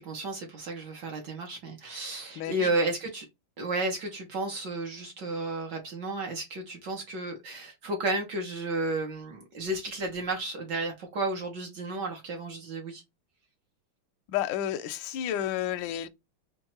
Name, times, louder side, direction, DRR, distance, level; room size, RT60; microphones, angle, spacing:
voice 1, 0.0-3.3 3.6-13.0, right 2 dB, 60° right, 1.4 m, -32 dB
voice 2, 2.4-2.7 14.3-16.1, left 11 dB, 75° left, 1.1 m, -31 dB
4.5 x 2.5 x 2.9 m
omnidirectional pair, 2.4 m